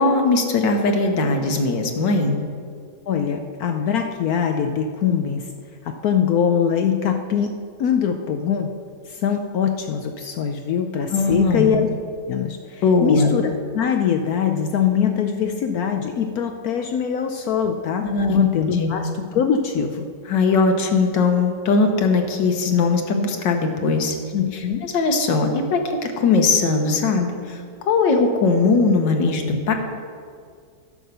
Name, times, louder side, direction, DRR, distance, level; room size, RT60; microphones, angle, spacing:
voice 1, 0.0-2.4 11.1-11.7 12.8-13.3 18.0-18.4 18.7-18.9 20.3-24.2 24.5-29.7, left 4 dB, 85° left, 4 dB, 1.7 m, -20 dB
voice 2, 3.1-5.5 5.8-8.7 9.1-11.9 12.3-20.1 24.3-24.8, left 7 dB, 70° left, 6 dB, 1.0 m, -22 dB
11.0 x 6.0 x 6.7 m, 2.1 s
omnidirectional pair, 1.9 m